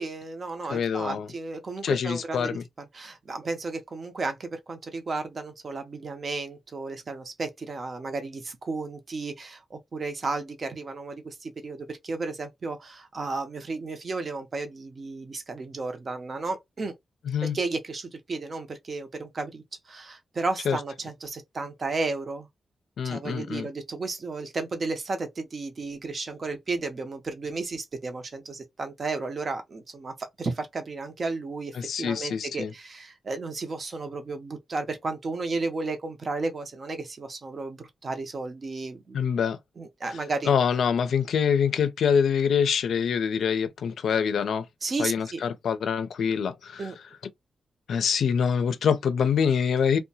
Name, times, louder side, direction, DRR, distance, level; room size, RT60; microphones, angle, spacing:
voice 1, 0.0-16.9 17.4-22.5 23.0-39.3 39.8-40.5 44.8-45.4 46.8-47.0, right 3 dB, 40° right, 0.6 m, -33 dB
voice 2, 0.7-1.3 1.8-2.6 17.3-17.6 20.7-20.8 23.0-23.7 31.8-32.7 39.1-39.6 40.5-44.6 45.0-46.9 47.9-50.0, left 7 dB, 80° left, 0.4 m, -25 dB
2.7 x 2.1 x 2.7 m
wide cardioid pair, 125°, 0 cm